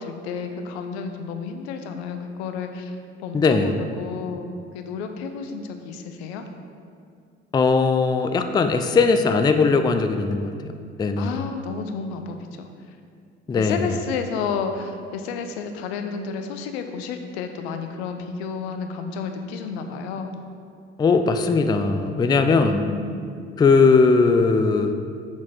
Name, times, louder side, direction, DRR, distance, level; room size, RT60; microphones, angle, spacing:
voice 1, 0.0-4.4 4.7-6.4 11.2-12.7 13.5-20.3 22.6-23.2, left 5 dB, 75° left, 6 dB, 0.7 m, -31 dB
voice 2, 3.3-3.7 7.5-10.5 11.0-11.4 13.5-13.8 21.0-22.9 23.6-24.9, left 4 dB, 15° left, 7 dB, 0.4 m, -19 dB
6.2 x 6.2 x 3.6 m, 2.3 s
hypercardioid pair, 55°, 33 cm